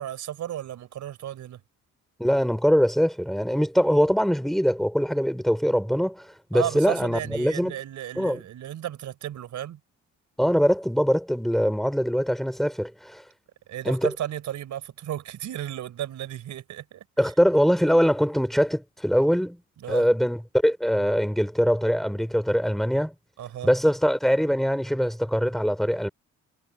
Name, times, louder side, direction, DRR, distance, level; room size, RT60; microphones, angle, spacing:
voice 1, 0.0-1.6 6.5-9.8 13.7-17.3 19.8-20.1 23.4-23.7, right 11 dB, 70° right, 4.0 m, -34 dB
voice 2, 2.2-6.3 6.5-7.7 8.2-8.4 10.4-13.2 13.8-14.1 17.2-19.6 19.9-23.1 23.6-26.1, equal, ahead, 4.4 m, -22 dB
cardioid pair, 90°, 30 cm